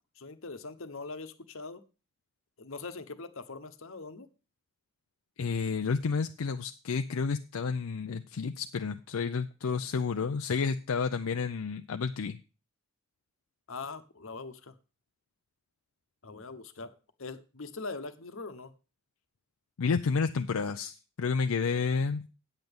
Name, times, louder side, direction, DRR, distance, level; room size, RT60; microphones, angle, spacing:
voice 1, 0.2-1.8 2.6-4.3 13.7-14.8 16.2-18.7, left 3 dB, 65° left, 10 dB, 1.0 m, -42 dB
voice 2, 5.4-12.4 19.8-22.2, left 5 dB, 80° left, 8 dB, 0.5 m, -30 dB
9.0 x 8.1 x 5.2 m, 0.33 s
head